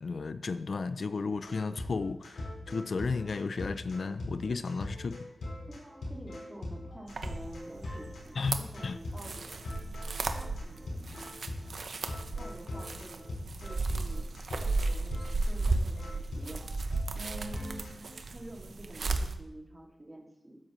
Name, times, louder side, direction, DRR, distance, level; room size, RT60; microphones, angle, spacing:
voice 1, 0.0-5.2 8.4-9.0, left 4 dB, 60° left, 12 dB, 0.4 m, -33 dB
sound 1, 1.3-18.1, left 1 dB, 85° left, 4.5 m, -41 dB
voice 2, 5.7-9.7 10.6-11.4 12.4-13.3 13.6-14.3 14.6-16.6 17.1-17.9 18.3-20.6, right 1 dB, 15° right, -1 dB, 2.3 m, -48 dB
sound 2, 7.1-19.3, right 3 dB, 65° right, 0.8 m, -35 dB
13.0 x 9.8 x 3.1 m, 0.88 s
wide cardioid pair, 90°, 0 cm